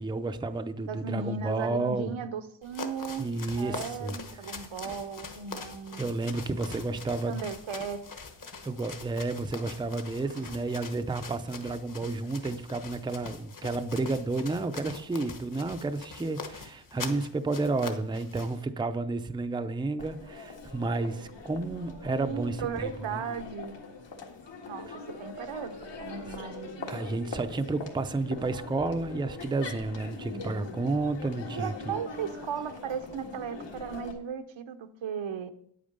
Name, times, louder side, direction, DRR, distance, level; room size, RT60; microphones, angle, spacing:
voice 1, 0.0-2.1 3.2-4.2 4.5-4.7 6.0-7.5 8.6-23.2 24.9-25.0 26.9-32.0, right 3 dB, 10° right, 0.5 m, -31 dB
voice 2, 0.8-3.3 3.6-6.1 7.3-8.1 10.4-10.7 22.2-23.8 24.7-25.7 26.0-26.9 31.5-35.5, right 6 dB, 80° right, 0.9 m, -36 dB
sound 1, 2.6-18.6, left 5 dB, 45° left, 1.2 m, -43 dB
Crowd, 20.0-34.1, left 3 dB, 70° left, 1.8 m, -42 dB
9.4 x 8.7 x 5.3 m
wide cardioid pair, 145°, 46 cm